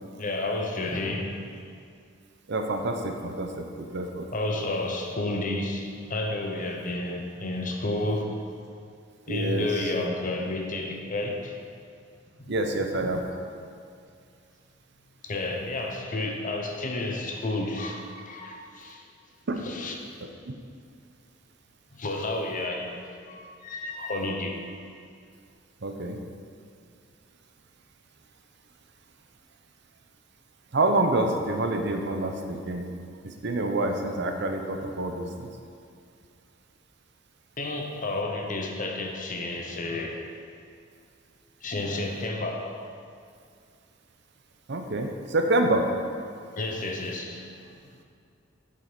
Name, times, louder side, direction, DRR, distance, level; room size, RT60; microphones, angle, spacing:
voice 1, 0.2-1.4 4.3-8.4 9.3-11.6 12.4-12.7 13.3-13.5 15.2-19.1 19.6-20.0 21.9-24.6 37.6-40.2 41.6-42.8 46.6-47.8, left 2 dB, 45° left, 2 dB, 1.0 m, -31 dB
voice 2, 2.5-4.3 9.3-9.7 12.5-13.2 19.5-19.6 25.8-26.2 30.7-32.9 33.4-35.5 44.7-45.8, right 2 dB, 60° right, 4 dB, 0.8 m, -27 dB
7.8 x 6.7 x 5.3 m, 2.3 s
head